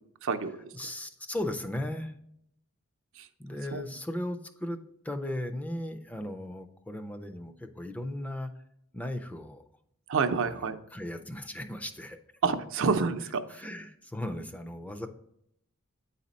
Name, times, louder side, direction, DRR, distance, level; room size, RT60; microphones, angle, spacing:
voice 1, 0.2-0.6 3.2-3.3 3.7-3.8 10.1-10.8 12.4-13.6, right 5 dB, 65° right, 9 dB, 0.6 m, -28 dB
voice 2, 0.7-2.1 3.4-4.8 5.0-8.5 8.9-9.6 10.4-12.2 13.5-15.1, left 1 dB, 5° left, 6 dB, 0.4 m, -36 dB
8.9 x 4.2 x 4.0 m, 0.74 s
head